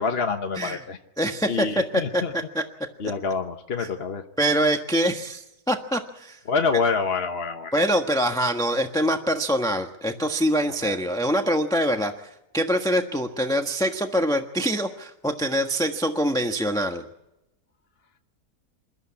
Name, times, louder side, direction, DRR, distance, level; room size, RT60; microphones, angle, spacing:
voice 1, 0.0-1.0 1.5-2.3 3.0-4.3 6.5-7.8 10.8-11.0, left 5 dB, 40° left, 4 dB, 1.2 m, -26 dB
voice 2, 1.2-1.8 2.1-2.2 2.5-2.6 4.4-6.4 7.7-12.3 12.5-17.0, equal, ahead, 4 dB, 1.2 m, -24 dB
28.0 x 14.0 x 8.7 m, 0.89 s
omnidirectional pair, 1.7 m